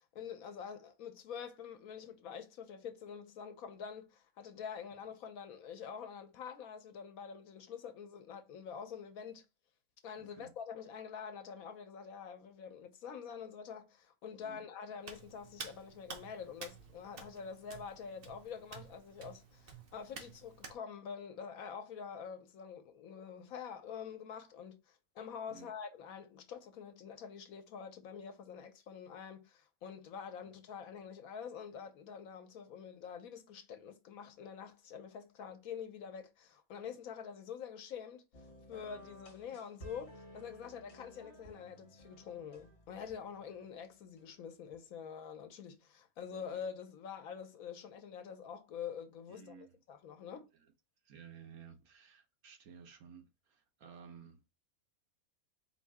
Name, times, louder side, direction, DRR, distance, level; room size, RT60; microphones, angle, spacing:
voice 1, 0.1-9.4 10.0-38.2 38.7-50.5, left 7 dB, 75° left, 1.2 m, -46 dB
voice 2, 10.2-10.5 14.4-14.6 25.5-25.8 41.0-41.1 46.3-46.6 49.3-49.8 50.5-50.7 51.0-54.5, right 6 dB, 85° right, 1.4 m, -55 dB
Hands, 15.0-20.8, right 5 dB, 50° right, 0.9 m, -51 dB
sound 1, 38.3-44.8, equal, 50° left, 1.4 m, -56 dB
4.5 x 2.7 x 3.5 m
omnidirectional pair, 1.5 m